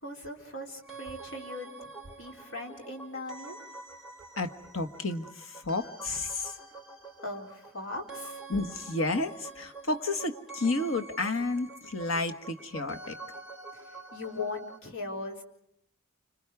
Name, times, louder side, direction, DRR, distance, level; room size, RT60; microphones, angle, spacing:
voice 1, 0.0-1.9 2.2-3.6 7.2-8.4 13.7-15.4, left 2 dB, 70° left, 2 dB, 4.0 m, -39 dB
sound 1, 0.8-14.8, right 3 dB, 5° right, 3.8 m, -46 dB
voice 2, 4.4-6.6 8.5-13.2, left 2 dB, 90° left, 7 dB, 1.6 m, -31 dB
29.5 x 26.5 x 4.8 m, 0.71 s
head